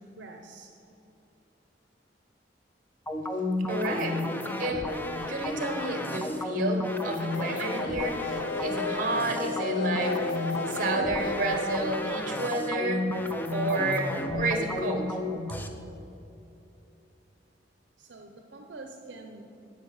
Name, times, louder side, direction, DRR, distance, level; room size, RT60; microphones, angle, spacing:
voice 1, 0.2-0.7 18.0-19.5, right 2 dB, 75° right, 3 dB, 0.6 m, -45 dB
sound 1, 3.1-15.7, left 2 dB, 10° left, 0.5 m, -32 dB
voice 2, 3.7-4.2 4.6-4.9 5.3-13.1 13.5-15.2, right 2 dB, 45° right, 4 dB, 1.2 m, -31 dB
sound 2, 7.3-14.8 15.0-15.1 15.4-15.5, left 3 dB, 75° left, 0.4 m, -36 dB
10.0 x 5.3 x 7.1 m, 2.8 s
head